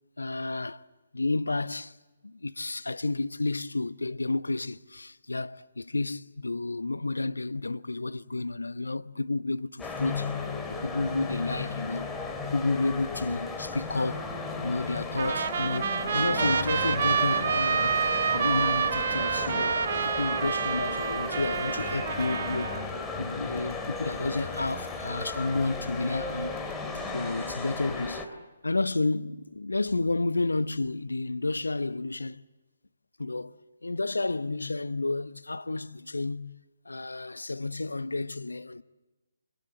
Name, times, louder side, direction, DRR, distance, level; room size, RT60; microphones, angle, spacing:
voice 1, 0.2-0.8 1.1-2.0 2.2-10.3 10.7-12.1 12.5-14.3 14.6-18.0 18.3-19.8 20.0-22.7 23.2-26.6 27.1-28.3 28.6-32.4 33.2-36.6 36.9-38.8, left 2 dB, 75° left, 0.9 m, -31 dB
sound 1, 9.8-28.3, left 3 dB, 10° left, 2.5 m, -35 dB
Trumpet, 15.2-22.8, right 7 dB, 45° right, 1.2 m, -28 dB
sound 2, 20.8-26.7, left 9 dB, 35° left, 4.1 m, -49 dB
29.5 x 24.5 x 7.9 m
figure-of-eight pair, 140°, 0 cm